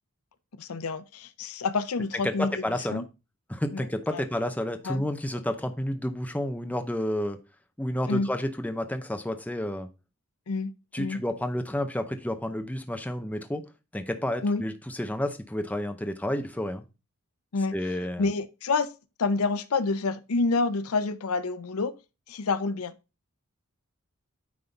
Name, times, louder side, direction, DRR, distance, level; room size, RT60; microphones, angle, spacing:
voice 1, 0.6-3.0 3.7-4.2 4.8-5.0 8.1-8.3 10.5-10.7 11.0-11.2 14.4-14.6 17.5-17.7 18.2-18.9 19.2-21.9 22.3-22.9, left 3 dB, 75° left, 0.6 m, -28 dB
voice 2, 2.2-3.0 3.5-7.4 7.8-9.9 10.9-13.6 13.9-16.8 17.7-18.3, left 1 dB, 5° left, 0.7 m, -30 dB
9.5 x 3.7 x 3.9 m
head